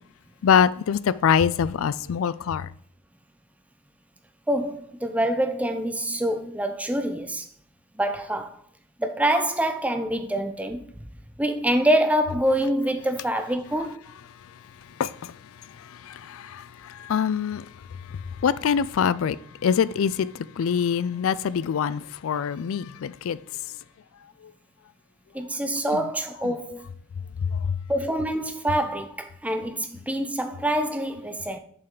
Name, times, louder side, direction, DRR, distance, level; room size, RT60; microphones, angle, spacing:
voice 1, 0.4-2.7 15.0-15.3 16.1-17.6 18.4-19.4 19.6-20.3 20.6-23.4 27.7-27.8, left 7 dB, 65° left, 0.3 m, -24 dB
voice 2, 4.5-7.5 8.0-8.6 9.0-11.1 11.4-14.0 25.3-26.9 27.9-31.6, right 1 dB, 5° right, 0.5 m, -26 dB
7.1 x 5.5 x 3.8 m
head